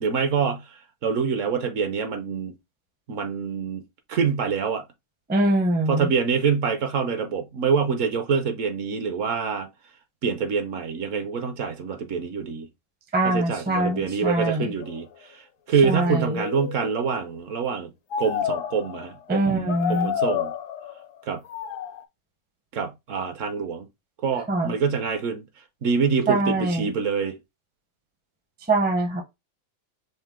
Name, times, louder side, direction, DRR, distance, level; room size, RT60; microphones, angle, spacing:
voice 1, 0.0-2.5 3.1-3.8 4.1-4.8 5.9-9.7 10.2-12.7 13.2-17.9 18.2-20.5 21.3-21.4 22.7-23.9 24.2-25.4 25.8-27.4, right 6 dB, 65° right, 1.0 m, -26 dB
voice 2, 5.3-6.1 13.1-14.7 15.8-16.4 19.3-20.1 24.5-24.7 26.3-26.9 28.7-29.2, right 1 dB, 10° right, 0.4 m, -23 dB
sound 1, 14.8-15.0 15.9-17.2 18.1-19.1 19.7-21.1 21.4-22.0, left 9 dB, 70° left, 0.9 m, -30 dB
5.5 x 2.0 x 3.5 m
omnidirectional pair, 1.6 m